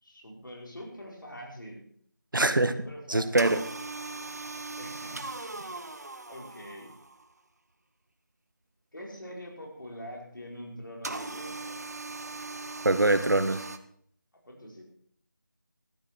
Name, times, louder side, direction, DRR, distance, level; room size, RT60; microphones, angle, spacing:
voice 1, 0.0-1.8 2.8-3.5 4.8-5.3 6.0-6.9 8.9-11.8 14.5-14.8, equal, 75° left, 0 dB, 4.9 m, -44 dB
voice 2, 2.3-2.7 3.1-3.6 12.8-13.6, right 2 dB, 80° right, 11 dB, 1.5 m, -23 dB
sound 1, 3.4-7.3 11.0-13.8, right 3 dB, 55° right, 1.1 m, -39 dB
13.5 x 9.1 x 6.1 m, 0.63 s
figure-of-eight pair, 175°, 11 cm